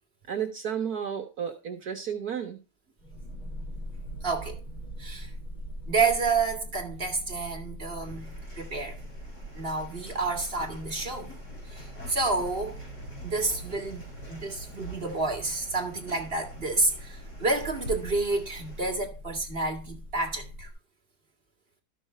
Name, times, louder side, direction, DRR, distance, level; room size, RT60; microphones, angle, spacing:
voice 1, 0.3-2.6, right 8 dB, 60° right, 1.8 m, -32 dB
sound 1, 3.0-20.7, equal, 25° left, 3.3 m, -43 dB
voice 2, 4.2-4.6 5.0-5.3 5.9-9.0 9.5-11.3 11.7-12.8 13.2-20.7, right 3 dB, 35° right, 2.1 m, -29 dB
sound 2, 8.0-18.9, right 2 dB, 65° left, 6.5 m, -44 dB
13.0 x 6.2 x 4.3 m
omnidirectional pair, 1.9 m